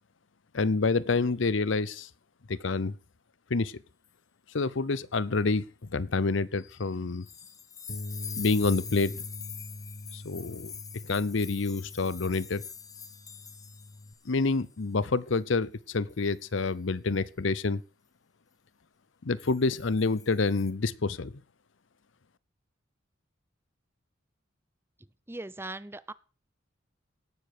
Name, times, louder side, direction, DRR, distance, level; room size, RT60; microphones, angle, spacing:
voice 1, 0.5-2.1 2.5-2.9 3.5-3.8 4.5-7.3 8.4-9.2 10.1-10.7 11.1-12.6 14.3-17.8 19.2-21.3, left 3 dB, 70° left, 18 dB, 0.7 m, -28 dB
sound 1, 7.3-14.2 14.5-14.7 16.1-16.4 19.4-20.7, left 7 dB, 20° left, 1.0 m, -44 dB
Bass guitar, 7.9-14.1, left 2 dB, 50° left, 1.2 m, -43 dB
voice 2, 25.3-26.1, right 2 dB, 10° right, 16 dB, 0.6 m, -39 dB
17.5 x 7.1 x 6.7 m, 0.37 s
head